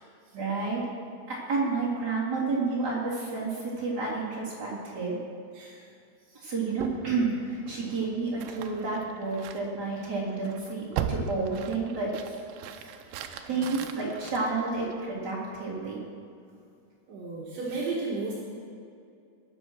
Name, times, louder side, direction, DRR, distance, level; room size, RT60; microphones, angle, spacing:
voice 1, 0.3-0.8 1.3-5.2 6.3-12.1 13.1-16.0, right 3 dB, 25° right, -7 dB, 3.1 m, -30 dB
sound 1, 6.8-15.2, right 7 dB, 85° right, 2.4 m, -39 dB
voice 2, 13.5-13.9 16.6-16.7 17.1-18.3, right 3 dB, 70° right, -4 dB, 3.7 m, -35 dB
20.0 x 6.8 x 6.4 m, 2.4 s
omnidirectional pair, 5.8 m